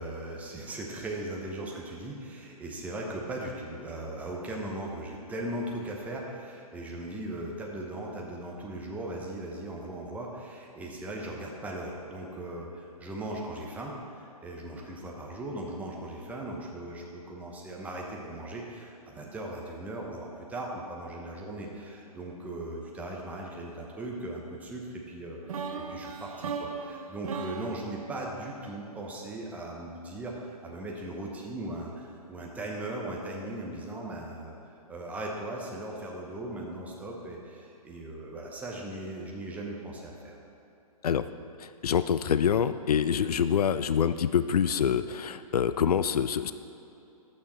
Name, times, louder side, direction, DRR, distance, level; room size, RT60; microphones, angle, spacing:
voice 1, 0.0-40.4, right 1 dB, 5° right, -2 dB, 1.0 m, -38 dB
sound 1, 25.5-29.5, right 5 dB, 65° right, 0.8 m, -38 dB
voice 2, 41.6-46.5, left 8 dB, 80° left, 13 dB, 0.4 m, -26 dB
12.5 x 6.6 x 4.3 m, 2.8 s
hypercardioid pair, 130°, 20 cm